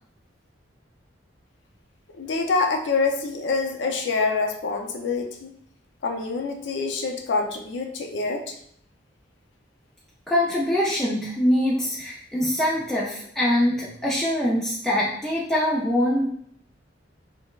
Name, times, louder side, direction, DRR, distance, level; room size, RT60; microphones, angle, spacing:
voice 1, 2.1-5.5 6.0-8.6, left 4 dB, 70° left, 4 dB, 0.4 m, -26 dB
voice 2, 10.3-16.3, left 1 dB, 5° left, -6 dB, 0.3 m, -23 dB
4.0 x 2.0 x 2.3 m, 0.67 s
head